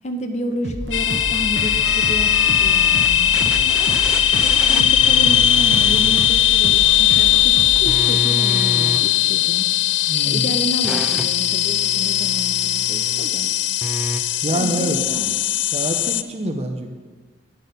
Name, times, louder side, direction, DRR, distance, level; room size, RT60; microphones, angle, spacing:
voice 1, 0.0-4.0 4.7-9.7 10.2-13.5 14.5-15.3, left 1 dB, 40° left, 6 dB, 0.7 m, -30 dB
sound 1, 0.6-9.0, right 1 dB, 85° right, 1.0 m, -30 dB
sound 2, 0.9-16.2, left 11 dB, 85° left, 0.3 m, -18 dB
sound 3, 1.8-3.1 3.3-7.3 7.7-10.2 10.8-13.3 13.8-14.2, right 1 dB, 5° right, 0.5 m, -31 dB
voice 2, 10.1-10.5 14.4-15.0 15.7-16.9, right 1 dB, 35° right, 5 dB, 0.8 m, -26 dB
9.6 x 6.1 x 5.3 m, 1.4 s
head